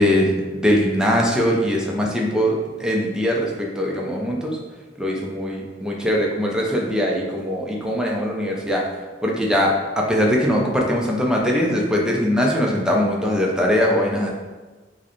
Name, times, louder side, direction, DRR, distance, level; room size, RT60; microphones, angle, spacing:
voice 1, 0.0-4.6 5.0-8.9 9.2-14.3, equal, 5° right, -2 dB, 0.5 m, -21 dB
4.6 x 2.1 x 3.0 m, 1.3 s
head